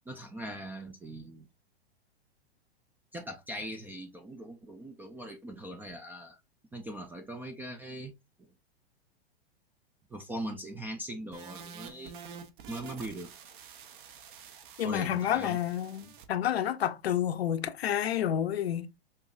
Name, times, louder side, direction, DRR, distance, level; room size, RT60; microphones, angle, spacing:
voice 1, 0.1-1.5 3.1-6.4 6.7-8.1 8.4-8.5 10.1-12.2 12.7-13.3 14.8-15.6, right 1 dB, 5° right, 0.3 m, -40 dB
sound 1, 11.3-16.3, right 6 dB, 55° right, 0.9 m, -48 dB
voice 2, 14.8-18.9, left 10 dB, 75° left, 0.7 m, -29 dB
5.6 x 2.7 x 2.3 m
hypercardioid pair, 105°, 31 cm